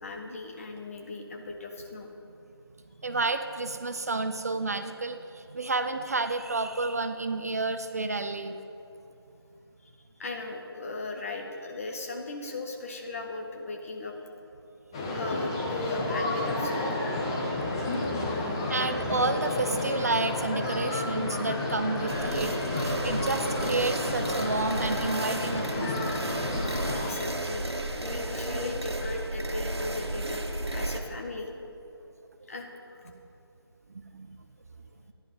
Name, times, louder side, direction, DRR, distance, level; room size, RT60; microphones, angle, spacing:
voice 1, 0.0-2.1 9.8-9.9 10.2-14.2 15.1-16.9 26.7-27.7 28.0-31.5 32.5-33.1, left 2 dB, 35° left, 2 dB, 1.4 m, -37 dB
voice 2, 3.0-8.6 18.7-26.3 33.1-33.2 33.9-34.3, right 3 dB, 40° right, 8 dB, 0.6 m, -30 dB
sound 1, 14.9-27.2, left 2 dB, 10° left, 0.7 m, -31 dB
sound 2, 22.1-31.0, right 1 dB, 80° right, 1.6 m, -33 dB
14.0 x 10.5 x 5.4 m, 2.9 s
figure-of-eight pair, 165°, 13 cm